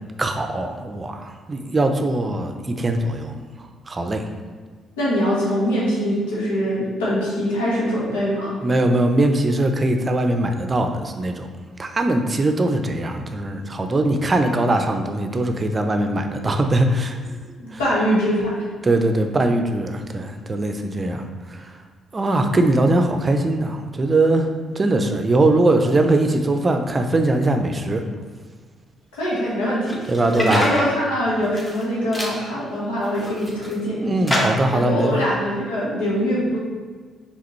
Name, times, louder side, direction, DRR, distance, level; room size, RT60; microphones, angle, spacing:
voice 1, 0.2-3.4 3.9-4.3 8.6-11.5 11.8-17.2 17.7-17.8 18.8-21.7 22.1-24.5 24.7-28.0 30.1-30.7 34.0-35.1, right 2 dB, 35° right, 6 dB, 0.5 m, -21 dB
voice 2, 5.0-8.5 17.6-18.7 29.1-30.0 30.3-34.1 34.7-36.6, equal, 90° left, -6 dB, 1.3 m, -23 dB
sound 1, 29.9-30.9 31.4-31.8 32.1-32.4 33.0-33.7 34.3-34.7, left 1 dB, 25° left, 1.5 m, -25 dB
4.9 x 3.5 x 3.1 m, 1.5 s
hypercardioid pair, 55°, 0 cm